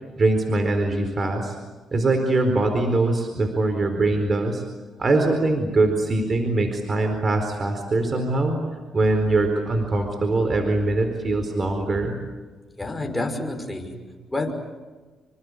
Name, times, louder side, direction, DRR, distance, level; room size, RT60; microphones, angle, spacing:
voice 1, 0.2-1.6 1.9-4.6 5.0-8.6 8.9-12.2, right 2 dB, 35° right, 5 dB, 4.4 m, -22 dB
voice 2, 12.8-14.5, left 2 dB, 10° left, 4 dB, 5.7 m, -29 dB
27.5 x 25.5 x 8.2 m, 1.3 s
cardioid pair, 90°, 0 cm